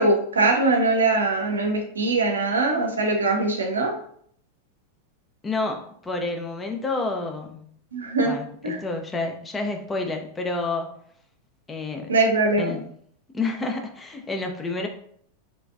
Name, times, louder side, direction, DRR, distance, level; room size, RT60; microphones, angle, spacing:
voice 1, 0.0-3.9 7.9-8.3 8.6-8.8 12.1-12.7, right 2 dB, 70° right, 2 dB, 0.6 m, -22 dB
voice 2, 5.4-7.7 8.2-10.9 11.7-12.1 12.6-12.8 13.3-14.9, left 3 dB, 15° left, 4 dB, 0.5 m, -29 dB
3.7 x 2.4 x 2.4 m, 0.62 s
figure-of-eight pair, 90°, 0 cm